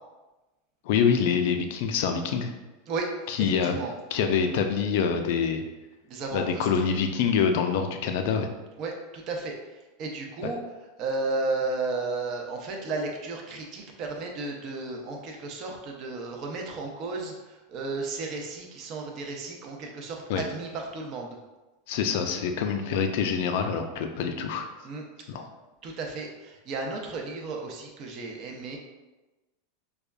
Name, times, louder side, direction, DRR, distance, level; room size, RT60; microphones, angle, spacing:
voice 1, 0.9-2.5 3.3-3.7 4.1-5.6 6.3-8.5 10.4-10.5 20.3-20.4 21.9-24.7 25.3-25.5, left 6 dB, 65° left, 6 dB, 0.4 m, -25 dB
voice 2, 2.9-3.9 6.1-6.7 8.8-10.6 11.0-21.4 24.8-25.0 25.8-28.8, right 3 dB, 45° right, 1 dB, 0.6 m, -34 dB
5.0 x 2.3 x 2.3 m, 1.1 s
supercardioid pair, 135°, 0 cm